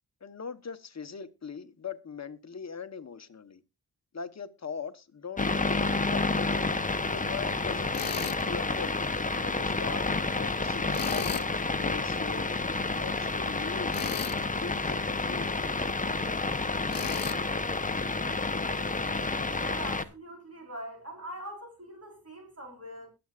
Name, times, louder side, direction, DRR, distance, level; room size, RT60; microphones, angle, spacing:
voice 1, 0.2-3.6 4.1-6.6 7.1-9.0 9.4-12.6 13.0-13.9 14.3-15.8, left 6 dB, 45° left, 1.2 m, -41 dB
sound 1, 5.4-20.0, left 3 dB, 20° left, 0.9 m, -30 dB
Tools, 7.9-8.4 10.9-11.5 13.9-14.4 16.9-17.4, left 9 dB, 65° left, 0.7 m, -35 dB
voice 2, 19.5-23.1, equal, 40° right, 4.5 m, -43 dB
21.5 x 7.9 x 2.5 m
wide cardioid pair, 85°, 38 cm